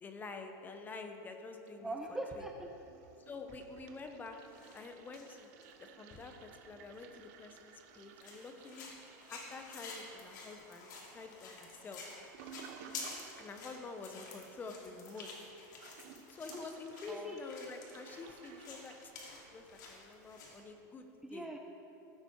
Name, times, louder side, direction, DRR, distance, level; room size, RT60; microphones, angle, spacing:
voice 1, 0.0-1.9 2.4-2.5 3.3-4.4 4.7-5.5 5.8-9.0 9.3-12.1 13.4-15.3 16.3-18.9 19.3-21.5, left 4 dB, 20° left, 5 dB, 1.0 m, -48 dB
Toilet flush, 1.4-2.3 2.6-19.0, right 7 dB, 60° right, 1.0 m, -57 dB
voice 2, 1.8-2.7 17.1-17.4 21.2-21.6, right 2 dB, 5° right, 2 dB, 0.5 m, -41 dB
sound 1, 4.4-4.8 5.1-6.3 6.9-7.0 7.6-7.7 8.2-20.6, left 4 dB, 85° left, 2.8 m, -50 dB
15.5 x 8.3 x 4.7 m, 3.0 s
supercardioid pair, 145°, 10 cm